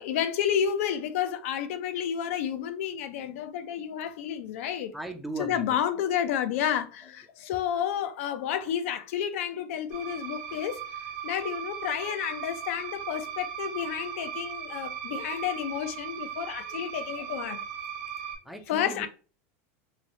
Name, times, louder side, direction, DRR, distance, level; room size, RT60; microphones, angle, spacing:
voice 1, 0.0-4.9 5.4-10.8 11.2-17.6 18.7-19.1, left 9 dB, 75° left, 0.4 m, -30 dB
voice 2, 4.9-6.3 18.4-19.1, right 2 dB, ahead, 0.4 m, -39 dB
sound 1, 9.9-18.4, right 9 dB, 75° right, 0.9 m, -38 dB
3.1 x 2.0 x 2.6 m
supercardioid pair, 150°, 7 cm